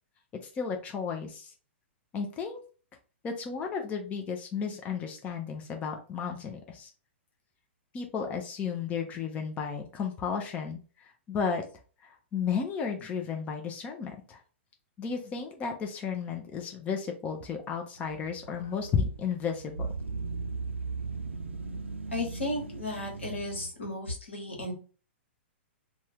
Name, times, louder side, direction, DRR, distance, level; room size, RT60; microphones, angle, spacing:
voice 1, 0.5-1.5 2.1-2.6 3.2-6.9 7.9-11.6 12.0-14.4 15.0-19.9, left 6 dB, 20° left, 3 dB, 0.5 m, -33 dB
sound 1, 18.0-23.7, right 4 dB, 85° right, 0.4 m, -38 dB
voice 2, 22.1-24.7, left 2 dB, 80° left, 1 dB, 1.2 m, -34 dB
2.6 x 2.3 x 3.3 m, 0.37 s
figure-of-eight pair, 105°, 6 cm